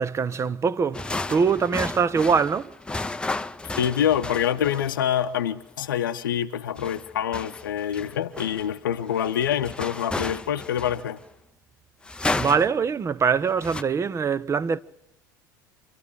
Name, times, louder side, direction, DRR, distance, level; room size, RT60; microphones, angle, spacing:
voice 1, 0.0-2.7 12.3-14.8, right 6 dB, 25° right, 0.8 m, -23 dB
sound 1, 0.9-5.0 6.8-11.2 12.0-12.9 13.5-13.8, left 2 dB, 10° left, 0.7 m, -33 dB
voice 2, 3.6-11.2, left 9 dB, 75° left, 0.7 m, -26 dB
26.0 x 13.0 x 8.4 m
hypercardioid pair, 75°, 11 cm